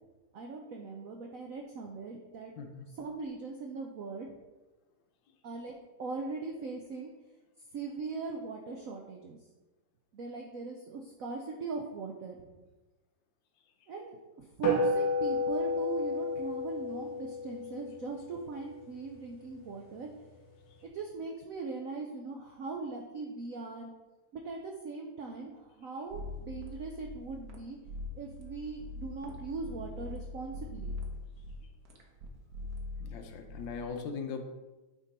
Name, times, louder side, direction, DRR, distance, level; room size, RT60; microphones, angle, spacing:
voice 1, 0.3-2.5 2.9-4.3 5.4-5.7 6.0-7.1 7.7-9.4 10.1-12.4 13.9-20.1 20.8-23.9 24.3-27.8 28.1-30.9, right 4 dB, 75° right, 2 dB, 0.7 m, -40 dB
voice 2, 2.6-2.9 33.0-34.4, left 5 dB, 70° left, 5 dB, 1.4 m, -39 dB
sound 1, 14.6-19.3, left 1 dB, 45° left, 1.7 m, -32 dB
sound 2, 26.1-33.9, left 2 dB, 55° right, 1.3 m, -42 dB
9.0 x 3.7 x 4.1 m, 1.1 s
omnidirectional pair, 2.2 m